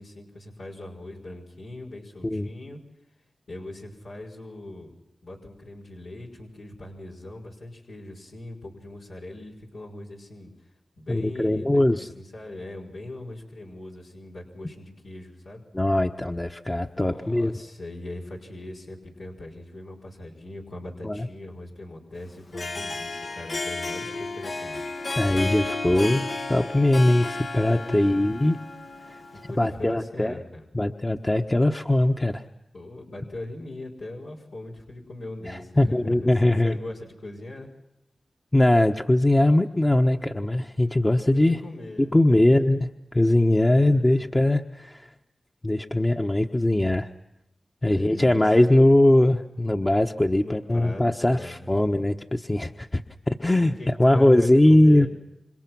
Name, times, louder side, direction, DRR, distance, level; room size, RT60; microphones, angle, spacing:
voice 1, 0.0-2.8 3.5-4.9 5.2-10.5 11.0-15.6 16.9-24.8 27.6-28.1 29.3-30.6 32.7-36.3 36.6-37.7 41.3-42.7 43.7-44.3 47.8-48.5 50.4-51.7 53.5-55.1, left 1 dB, 90° left, -3 dB, 5.7 m, -40 dB
voice 2, 11.1-12.1 15.7-17.5 21.0-21.3 25.2-28.6 29.1-29.2 29.6-30.4 30.7-32.4 35.5-36.8 38.5-41.6 42.0-45.1 45.6-47.1 47.8-55.1, left 1 dB, 25° left, 3 dB, 1.2 m, -21 dB
Harp, 22.4-29.7, left 2 dB, 70° left, 1.5 m, -33 dB
29.5 x 26.0 x 6.2 m, 0.86 s
cardioid pair, 45°, 0 cm